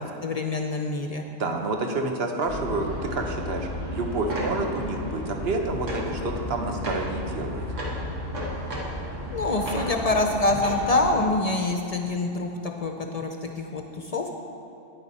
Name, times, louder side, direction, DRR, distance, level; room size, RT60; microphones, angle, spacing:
voice 1, 0.2-1.2 9.3-14.3, left 2 dB, 45° left, 3 dB, 0.5 m, -26 dB
voice 2, 1.4-7.7, right 2 dB, 55° right, 3 dB, 1.1 m, -29 dB
sound 1, 2.5-11.2, left 1 dB, 75° right, 1.8 m, -33 dB
9.7 x 9.7 x 4.1 m, 2.9 s
omnidirectional pair, 1.3 m